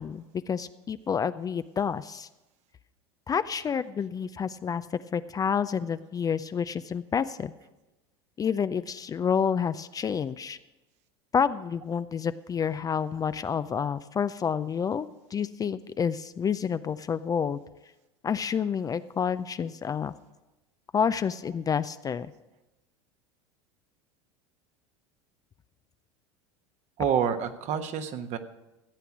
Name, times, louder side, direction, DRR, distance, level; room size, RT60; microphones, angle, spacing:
voice 1, 0.0-2.3 3.3-4.9 5.1-7.5 8.4-10.6 11.3-17.6 18.2-20.1 20.9-22.3, left 7 dB, 25° left, 13 dB, 0.4 m, -29 dB
voice 2, 27.0-28.4, right 8 dB, 50° right, 7 dB, 1.3 m, -28 dB
15.0 x 8.3 x 6.0 m, 1.0 s
hypercardioid pair, 85°, 15 cm